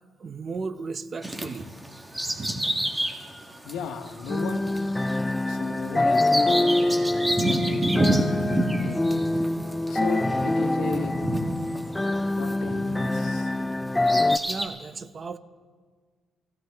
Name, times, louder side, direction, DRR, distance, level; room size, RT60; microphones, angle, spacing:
voice 1, 0.2-1.7 2.4-2.6 14.4-15.4, right 4 dB, 40° right, 12 dB, 0.6 m, -35 dB
Bird vocalization bird call bird song, 1.2-13.3 13.8-14.7, right 1 dB, 15° right, 1.4 m, -29 dB
voice 2, 3.6-4.6 5.5-6.9 7.4-9.0 9.9-11.1 12.3-13.6, left 6 dB, 85° left, 7 dB, 1.0 m, -35 dB
sound 1, 4.3-14.4, left 2 dB, 10° left, 0.3 m, -25 dB
15.5 x 15.0 x 3.5 m, 1.5 s
cardioid pair, 90°, 0 cm